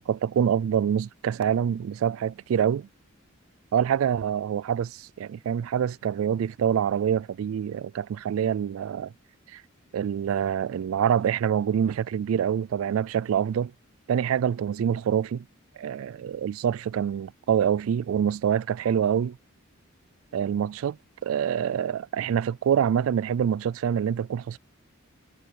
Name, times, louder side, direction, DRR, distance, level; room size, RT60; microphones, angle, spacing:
voice 1, 0.1-2.9 3.7-9.1 9.5-9.6 9.9-13.7 14.1-15.4 15.8-19.4 20.3-21.0 21.2-24.6, right 8 dB, 75° right, 0.3 m, -26 dB
head